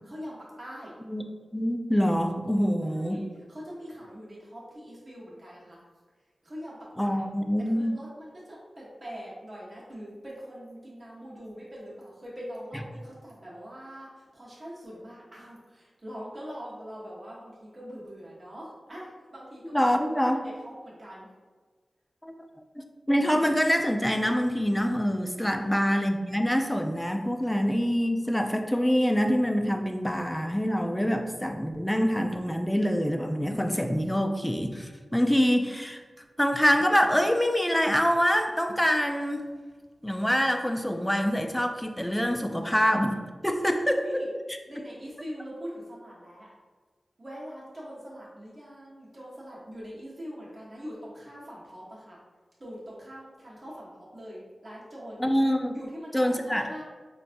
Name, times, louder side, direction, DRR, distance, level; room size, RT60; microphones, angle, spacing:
voice 1, 0.1-0.9 2.8-5.8 6.4-7.2 7.6-19.9 20.2-20.4 20.6-21.3 25.5-25.7 43.9-44.3 44.7-46.5 47.2-52.2 52.6-55.3 55.7-56.8, equal, 45° right, -7 dB, 0.9 m, -43 dB
voice 2, 1.5-3.2 7.0-7.9 19.7-20.4 22.2-22.5 22.8-36.0 36.4-39.5 40.0-43.2 43.4-44.2 55.2-55.7 56.1-56.6, equal, 5° left, 5 dB, 0.3 m, -25 dB
4.0 x 2.2 x 2.5 m, 1.4 s
cardioid pair, 55°, 0 cm